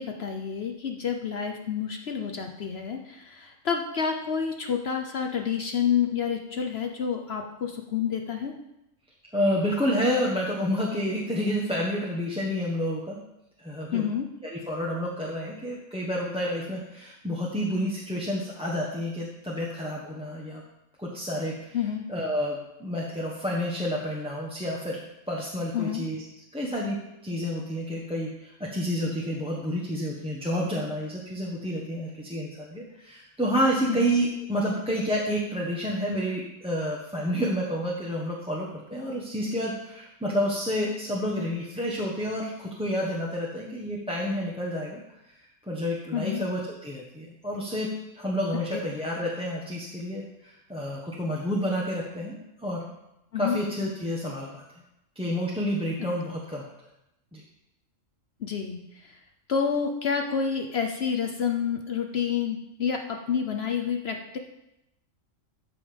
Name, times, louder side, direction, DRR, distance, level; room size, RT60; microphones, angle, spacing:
voice 1, 0.0-8.5 13.9-14.3 21.7-22.0 25.7-26.0 33.9-34.1 46.1-46.4 48.7-48.8 53.3-53.6 58.4-59.2 59.5-64.4, left 7 dB, 55° left, 4 dB, 1.0 m, -29 dB
voice 2, 9.3-13.2 13.6-14.0 14.4-20.6 21.0-21.8 22.1-25.0 25.3-26.2 26.5-27.0 27.2-45.0 45.6-47.9 48.1-52.8 53.3-54.6 55.1-56.7 57.3-57.4, equal, 5° right, -4 dB, 1.3 m, -29 dB
13.5 x 5.6 x 5.2 m, 0.88 s
omnidirectional pair, 1.4 m